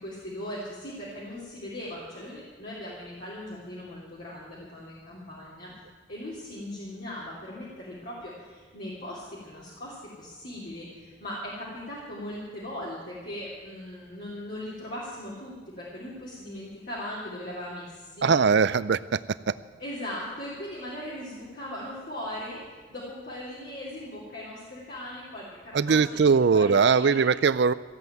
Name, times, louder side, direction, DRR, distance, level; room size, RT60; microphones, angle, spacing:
voice 1, 0.0-5.7 6.1-18.3 19.8-26.3 26.5-27.2, left 1 dB, 55° left, -7 dB, 3.3 m, -39 dB
voice 2, 18.2-19.2 19.5-19.6 25.7-27.7, right 5 dB, 65° right, 16 dB, 0.5 m, -21 dB
15.0 x 8.3 x 9.2 m, 1.4 s
head